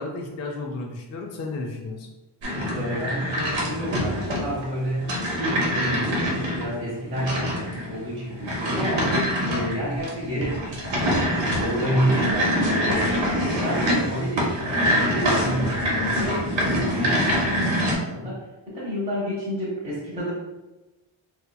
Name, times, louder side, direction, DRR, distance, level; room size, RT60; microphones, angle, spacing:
voice 1, 0.0-2.1, left 3 dB, 35° left, 0 dB, 0.4 m, -33 dB
sound 1, 2.4-17.9, equal, 65° right, 0.9 m, -25 dB
voice 2, 2.7-9.2 9.4-20.3, equal, 15° right, -8 dB, 0.8 m, -30 dB
4.0 x 2.8 x 2.2 m, 1.1 s
wide cardioid pair, 180°, 48 cm